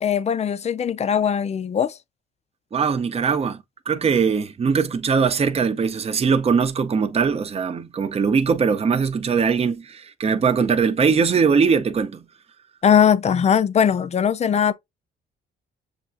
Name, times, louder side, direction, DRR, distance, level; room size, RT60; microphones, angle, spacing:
voice 1, 0.0-2.0 12.8-14.7, left 8 dB, 35° left, 0.4 m, -20 dB
voice 2, 2.7-3.6 3.9-12.2, right 5 dB, 30° right, 0.6 m, -21 dB
6.9 x 2.3 x 2.5 m
cardioid pair, 90°, 20 cm